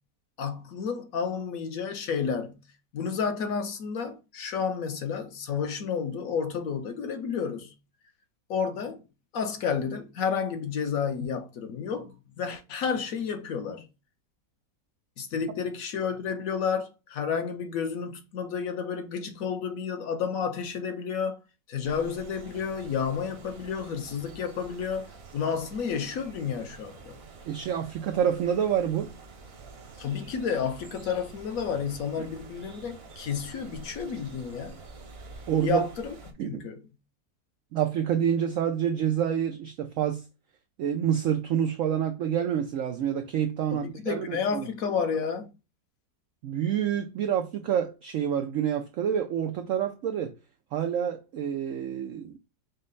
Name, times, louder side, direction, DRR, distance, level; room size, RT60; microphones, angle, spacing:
voice 1, 0.4-2.6 2.9-7.7 8.5-9.0 9.3-13.9 15.2-21.4 21.7-27.2 30.0-34.9 35.6-36.9 43.7-45.5, left 6 dB, 60° left, 1.0 m, -31 dB
sound 1, 21.8-36.3, right 4 dB, 50° right, 0.8 m, -48 dB
voice 2, 27.5-29.1 32.2-32.3 35.5-35.8 36.4-36.6 37.7-40.2 40.8-44.7 46.4-50.3 50.7-52.4, right 9 dB, 85° right, 0.7 m, -27 dB
5.3 x 2.1 x 3.8 m
omnidirectional pair, 1.9 m